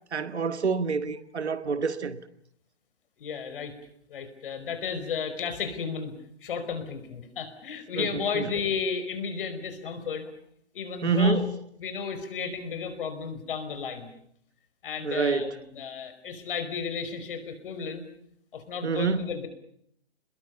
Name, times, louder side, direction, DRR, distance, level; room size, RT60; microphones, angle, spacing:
voice 1, 0.1-2.2 8.0-8.1 8.3-8.4 11.0-11.5 15.0-15.5 18.8-19.3, right 4 dB, 85° right, 1.8 m, -26 dB
voice 2, 3.2-3.7 4.1-6.1 6.4-10.2 10.7-11.5 11.8-14.1 14.8-18.0 18.5-19.5, left 6 dB, 55° left, 5.2 m, -33 dB
28.0 x 21.5 x 7.0 m
hypercardioid pair, 150°, 33 cm